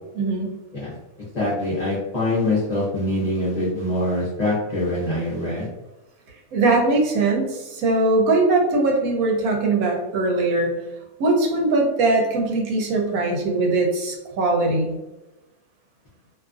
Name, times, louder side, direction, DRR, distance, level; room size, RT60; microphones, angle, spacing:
voice 1, 0.2-0.5 6.5-10.7 11.2-14.9, right 2 dB, 85° right, 1 dB, 1.1 m, -21 dB
voice 2, 1.3-5.7, left 1 dB, 40° left, -8 dB, 0.6 m, -24 dB
2.6 x 2.4 x 2.4 m, 1.0 s
omnidirectional pair, 1.5 m